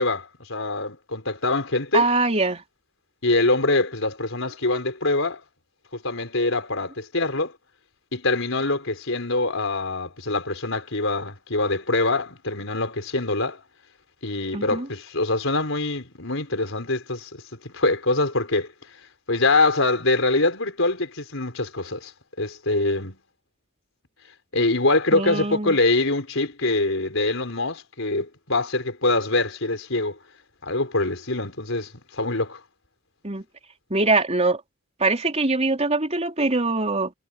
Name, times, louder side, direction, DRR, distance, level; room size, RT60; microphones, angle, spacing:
voice 1, 0.0-2.1 3.2-5.4 6.0-7.5 8.1-13.6 14.2-17.3 17.6-18.7 19.3-22.1 22.4-23.2 24.5-30.2 30.6-32.6, left 2 dB, 70° left, 5.7 m, -24 dB
voice 2, 1.9-2.6 14.5-14.9 25.1-25.8 33.2-33.4 33.9-34.6 35.0-37.1, right 3 dB, 30° right, 4.3 m, -22 dB
head